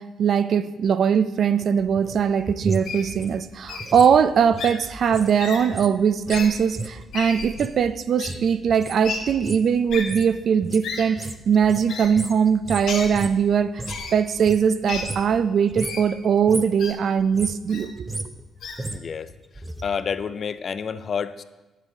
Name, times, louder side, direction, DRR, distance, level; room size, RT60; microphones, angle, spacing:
voice 1, 0.0-13.8 14.1-18.1, right 7 dB, 60° right, 13 dB, 0.4 m, -21 dB
sound 1, 1.8-5.3 5.6-14.1 14.4-15.4 15.7-16.1 16.4-16.8 17.2-19.8 20.1-20.2, right 2 dB, 15° right, 0.6 m, -35 dB
Wild animals, 2.8-3.0 3.7-3.9 4.6-4.7 5.4-5.6 6.3-6.5 7.1-7.5 8.2-8.3 9.0-9.2 9.9-10.0 10.8-11.0 11.9-12.1 12.9-13.1 13.9-14.1 14.9-15.0 15.8-16.0 16.8-16.9 17.7-17.8 18.6-18.8, left 5 dB, 80° left, 1.3 m, -31 dB
voice 2, 18.9-19.3 19.8-21.4, left 6 dB, 50° left, 13 dB, 0.4 m, -29 dB
9.2 x 7.4 x 3.8 m, 1.1 s
cardioid pair, 90°, 0 cm